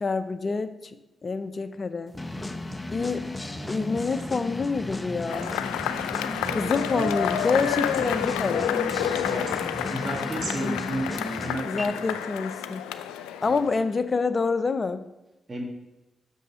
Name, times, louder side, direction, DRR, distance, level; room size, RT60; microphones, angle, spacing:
voice 1, 0.0-1.0 1.2-2.1 2.9-3.3 3.7-5.5 6.5-8.7 10.6-10.8 11.6-12.8 13.4-15.1, left 4 dB, 45° left, 12 dB, 0.6 m, -27 dB
sound 1, 2.1-11.8, left 2 dB, 20° left, 0.8 m, -34 dB
sound 2, 4.1-10.5, right 4 dB, 70° right, 1.7 m, -47 dB
Cheering / Applause / Crowd, 5.3-13.9, left 9 dB, 90° left, 0.3 m, -30 dB
voice 2, 6.4-7.1 9.3-9.6 9.9-11.1 11.4-12.2 13.5-13.6 15.5-15.6, right 1 dB, 35° right, 2 dB, 1.6 m, -33 dB
6.4 x 5.4 x 6.3 m, 1.0 s
hypercardioid pair, 40°, 0 cm